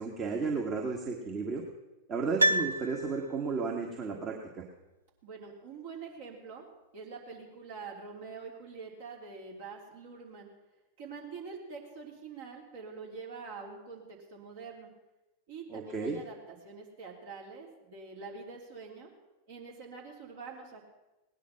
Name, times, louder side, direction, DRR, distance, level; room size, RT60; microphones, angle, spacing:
voice 1, 0.0-1.6 2.1-4.6 15.7-16.2, right 4 dB, 25° right, 0 dB, 1.7 m, -33 dB
Piano, 2.4-3.6 3.9-4.0, right 1 dB, 80° right, 0.5 m, -29 dB
voice 2, 5.2-6.6 6.9-10.5 11.0-14.9 15.5-19.1 19.5-20.9, right 5 dB, 55° right, -1 dB, 3.4 m, -45 dB
18.0 x 10.0 x 5.8 m, 1.0 s
figure-of-eight pair, 90°, 0 cm